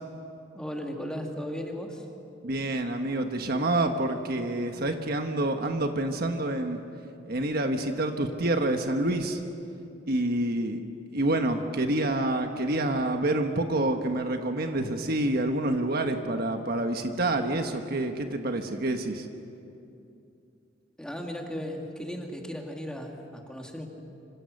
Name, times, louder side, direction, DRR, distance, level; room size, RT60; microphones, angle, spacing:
voice 1, 0.5-2.0 21.0-23.9, equal, 5° left, 1 dB, 2.5 m, -36 dB
voice 2, 2.4-6.8 7.3-9.4 10.1-10.8 11.1-19.2, right 1 dB, 55° right, 5 dB, 1.3 m, -27 dB
26.5 x 26.0 x 6.6 m, 2.7 s
head